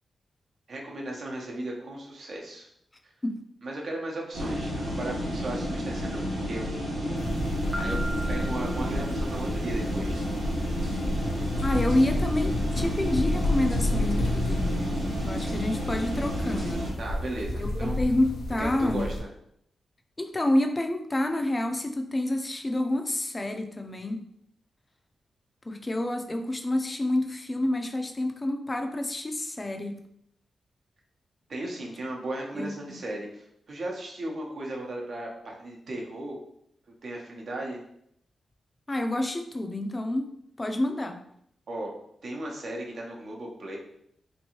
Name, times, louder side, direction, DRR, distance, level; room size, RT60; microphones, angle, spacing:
voice 1, 0.7-2.7 3.0-3.1 3.6-6.7 7.1-7.3 7.7-8.0 8.3-10.2 17.0-18.0 18.6-19.3 31.5-36.4 37.0-37.8 41.7-41.9 42.2-43.8, right 1 dB, 65° right, -1 dB, 0.8 m, -36 dB
sound 1, 4.3-16.9, equal, 90° right, 1.0 m, -31 dB
sound 2, 7.2-19.2, left 1 dB, 85° left, 0.5 m, -31 dB
Piano, 7.7-9.6, equal, 15° right, 0.8 m, -38 dB
voice 2, 11.6-14.9 15.2-16.9 17.6-19.1 20.2-24.3 25.6-30.0 32.5-33.0 38.9-40.3 40.6-41.2, left 1 dB, 30° left, 5 dB, 0.5 m, -28 dB
3.0 x 2.6 x 2.9 m, 0.72 s
cardioid pair, 55°, 0 cm